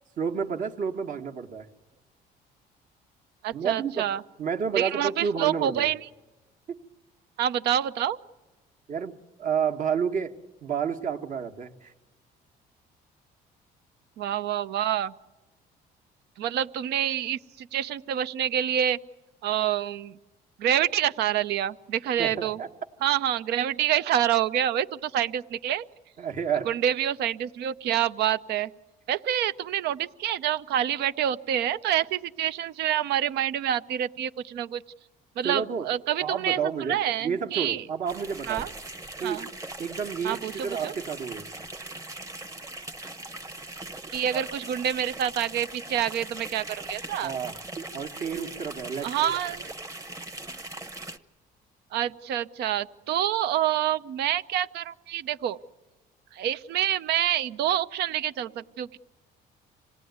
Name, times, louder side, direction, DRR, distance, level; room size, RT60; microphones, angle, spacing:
voice 1, 0.2-1.7 3.5-4.0 4.4-5.9 6.7-6.8 8.9-10.3 10.6-11.9 22.2-22.7 26.2-26.7 35.4-35.9 36.2-38.7 39.2-39.4 39.8-41.5 44.3-44.4 47.2-47.6 47.9-49.3, right 6 dB, 50° right, 4 dB, 1.4 m, -30 dB
voice 2, 3.4-4.2 4.8-6.0 7.4-8.2 14.2-15.1 16.4-19.0 19.4-20.1 20.6-22.6 23.0-25.8 26.7-28.7 29.1-34.8 35.4-36.6 36.9-37.8 38.5-38.7 39.2-39.4 40.2-40.9 44.1-47.3 49.0-49.7 51.9-55.6 56.4-59.0, right 10 dB, 75° right, 14 dB, 0.7 m, -27 dB
sound 1, 38.1-51.2, right 2 dB, 20° right, 1.1 m, -40 dB
26.5 x 18.0 x 9.4 m, 1.2 s
cardioid pair, 110°, 17 cm